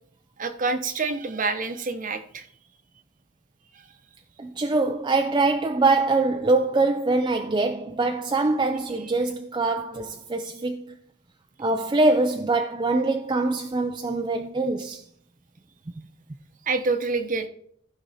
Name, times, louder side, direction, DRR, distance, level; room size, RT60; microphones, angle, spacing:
voice 1, 0.4-2.5 3.7-3.8 16.7-17.5, right 3 dB, 45° right, 0.9 m, -27 dB
voice 2, 4.4-10.9 11.6-15.0 16.0-16.1, right 3 dB, 25° right, 0.4 m, -23 dB
15.0 x 5.1 x 4.2 m
head